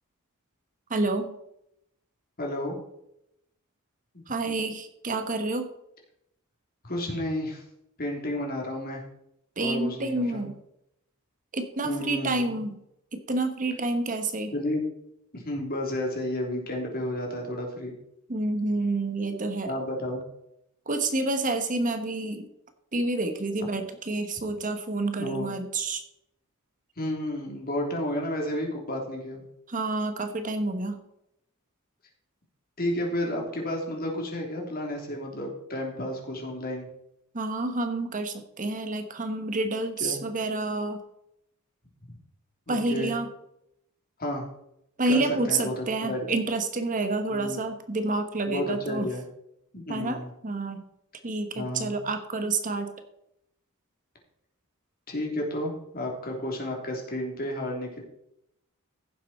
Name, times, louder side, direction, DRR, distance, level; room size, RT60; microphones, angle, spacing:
voice 1, 0.9-1.3 4.3-5.7 9.6-10.5 11.5-12.7 13.1-14.5 18.3-19.7 20.9-22.5 22.9-26.0 29.7-31.0 37.3-41.0 42.7-43.3 45.0-49.1 49.9-50.8 51.2-52.9, right 2 dB, 35° right, 7 dB, 1.1 m, -28 dB
voice 2, 2.4-2.8 4.1-4.6 6.8-7.6 8.0-9.0 9.6-10.4 11.8-12.6 14.5-14.8 15.3-17.9 19.6-20.2 25.2-25.5 27.0-29.4 32.8-36.9 40.0-40.2 42.1-42.2 42.7-43.1 44.2-44.4 45.1-46.4 47.3-47.6 48.5-49.2 49.7-50.3 51.5-52.0 55.1-58.0, left 1 dB, 45° left, 0 dB, 3.2 m, -32 dB
15.5 x 7.4 x 4.3 m, 0.79 s
head